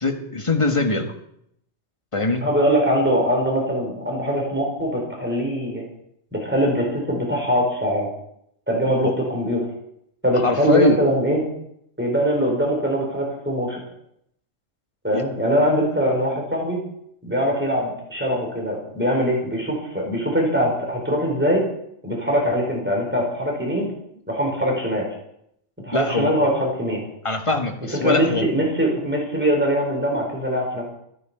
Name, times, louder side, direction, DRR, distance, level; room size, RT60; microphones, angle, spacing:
voice 1, 0.0-1.1 2.1-2.4 9.0-9.1 10.3-11.0 15.1-15.2 25.9-26.3 27.2-28.5, left 2 dB, 25° left, 4 dB, 1.7 m, -22 dB
voice 2, 2.4-5.8 6.3-8.1 8.7-9.6 10.2-11.4 12.0-13.8 15.0-16.8 17.2-21.6 22.0-23.9 24.3-25.1 25.8-27.0 28.0-30.9, equal, 10° right, -1 dB, 4.6 m, -22 dB
14.0 x 13.5 x 5.1 m, 0.73 s
omnidirectional pair, 1.3 m